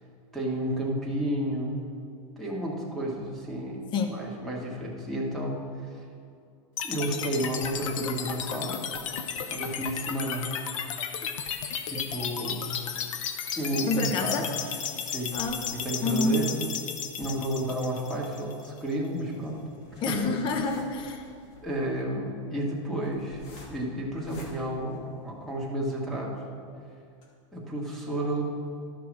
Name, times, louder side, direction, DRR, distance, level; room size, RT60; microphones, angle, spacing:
voice 1, 0.3-1.8 2.4-6.0 6.8-8.8 9.1-9.2 9.5-10.5 11.9-12.6 13.6-14.5 15.0-15.4 15.7-16.5 17.2-19.6 20.1-20.2 21.6-23.4 23.7-26.4 27.5-28.4, right 1 dB, ahead, -3 dB, 1.8 m, -31 dB
voice 2, 3.9-4.2 13.9-14.5 15.3-15.6 16.0-16.5 20.0-21.3, left 3 dB, 30° left, 5 dB, 0.8 m, -28 dB
sound 1, 6.8-18.8, left 7 dB, 90° left, 0.8 m, -34 dB
sound 2, 15.0-25.7 26.2-26.3 26.6-26.7 27.1-27.2, left 1 dB, 50° left, 2.3 m, -52 dB
12.5 x 5.9 x 4.8 m, 2.4 s
supercardioid pair, 145°, 16 cm